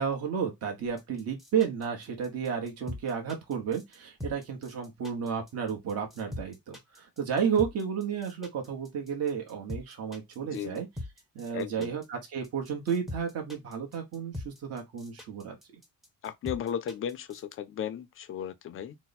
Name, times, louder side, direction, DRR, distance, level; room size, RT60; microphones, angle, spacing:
voice 1, 0.0-10.9 11.3-15.5, right 7 dB, 45° right, 1.1 m, -32 dB
sound 1, 1.0-17.5, left 1 dB, ahead, 0.6 m, -42 dB
voice 2, 10.4-10.8 11.5-11.9 16.2-18.9, left 9 dB, 40° left, 0.4 m, -35 dB
4.1 x 2.1 x 4.0 m
cardioid pair, 180°, 34 cm